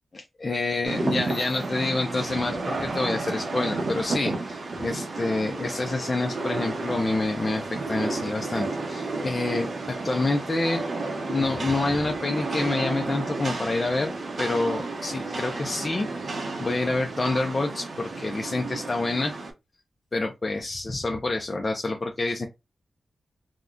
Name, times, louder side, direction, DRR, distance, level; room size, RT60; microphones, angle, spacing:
voice 1, 0.1-10.8 11.3-16.3 16.6-19.3 20.1-22.5, left 2 dB, 30° left, 0.4 m, -27 dB
Rain, 0.8-19.5, right 3 dB, 55° right, 0.7 m, -32 dB
3.7 x 2.1 x 2.4 m
wide cardioid pair, 140°, 0 cm